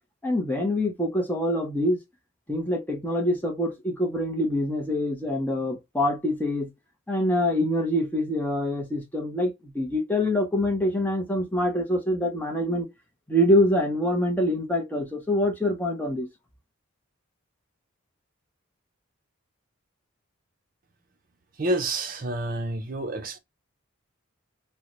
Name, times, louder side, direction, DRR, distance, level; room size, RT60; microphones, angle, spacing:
voice 1, 0.2-2.0 2.5-6.7 7.1-12.9 13.3-16.3, left 1 dB, 10° left, 0.7 m, -25 dB
voice 2, 21.6-23.4, right 1 dB, 40° right, 0.6 m, -28 dB
3.8 x 2.1 x 2.9 m
head